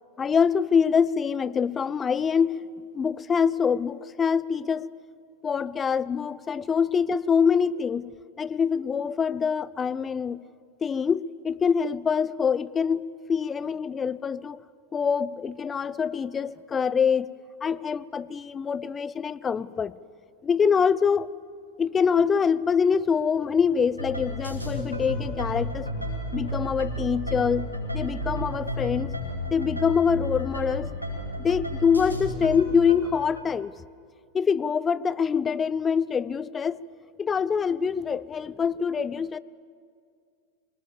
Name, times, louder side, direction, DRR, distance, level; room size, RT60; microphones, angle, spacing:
voice 1, 0.2-2.6 2.9-4.9 5.4-8.1 8.4-10.4 10.8-14.6 14.9-17.3 17.6-19.9 20.4-21.3 21.8-25.9 26.3-27.7 27.9-29.1 29.5-30.9 31.4-33.7 34.3-36.8 37.2-39.4, left 6 dB, 20° left, 19 dB, 0.5 m, -25 dB
sound 1, 24.0-33.4, equal, 90° right, 4.4 m, -32 dB
25.5 x 18.5 x 7.4 m, 2.2 s
figure-of-eight pair, 90°, 0 cm